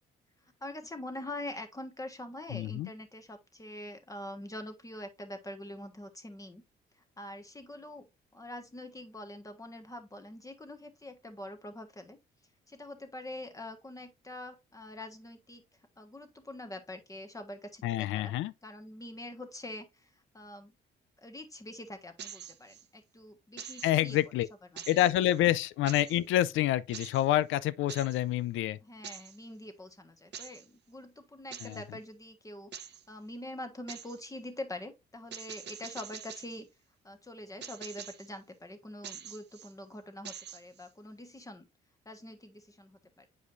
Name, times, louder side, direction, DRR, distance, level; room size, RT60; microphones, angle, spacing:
voice 1, 0.6-6.6 7.0-8.1 8.3-12.2 12.7-15.6 16.0-18.3 18.6-20.7 21.2-24.2 24.7-24.8 25.2-25.3 28.8-36.7 37.0-41.7 42.0-43.3, left 1 dB, 15° left, 1.4 m, -44 dB
voice 2, 2.5-2.9 17.8-18.5 23.8-24.5 24.9-28.8 31.6-31.8, left 13 dB, 90° left, 0.5 m, -27 dB
sound 1, 22.2-22.8 23.6-24.2 24.8-25.4 25.9-26.2 26.9-27.3 27.9-28.2 29.0-29.4 30.3-30.7 31.5-31.8 32.7-33.0 33.9-34.2 35.3-36.6 37.6-38.3 39.0-39.7 40.3-40.9, right 9 dB, 60° right, 0.8 m, -45 dB
8.3 x 4.9 x 2.6 m
cardioid pair, 90°, 20 cm